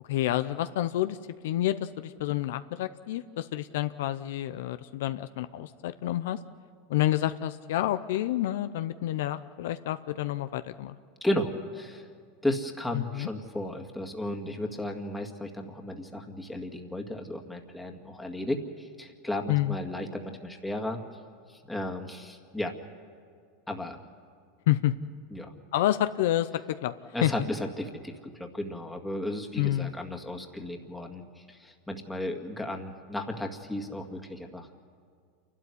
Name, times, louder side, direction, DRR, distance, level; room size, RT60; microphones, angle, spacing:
voice 1, 0.1-1.2 1.4-6.4 6.9-10.9 12.9-13.3 19.5-19.8 24.7-24.9 25.7-26.9 27.2-27.3 29.6-29.9, left 14 dB, 75° left, 11 dB, 0.6 m, -28 dB
voice 2, 11.2-12.1 12.4-21.0 21.5-22.7 23.7-24.0 25.3-25.5 27.1-34.8, left 1 dB, 5° left, 3 dB, 2.0 m, -34 dB
28.0 x 12.5 x 9.9 m, 2.1 s
supercardioid pair, 115°, 0 cm